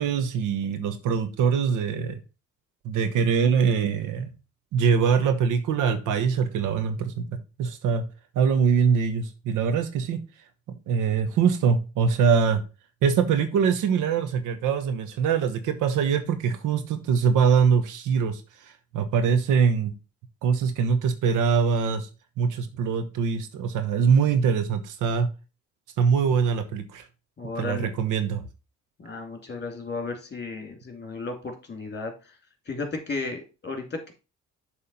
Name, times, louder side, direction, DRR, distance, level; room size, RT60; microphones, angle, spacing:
voice 1, 0.0-2.2 2.8-4.3 4.7-7.3 7.6-8.1 8.3-10.2 10.9-12.6 13.0-18.4 18.9-19.9 20.4-22.1 22.4-25.3 26.0-27.0 27.6-28.4, right 6 dB, 85° right, 1.2 m, -23 dB
voice 2, 27.4-27.9 29.0-32.3 32.7-34.1, left 3 dB, 35° left, 2.4 m, -34 dB
7.2 x 3.5 x 5.3 m
cardioid pair, 90°, 30 cm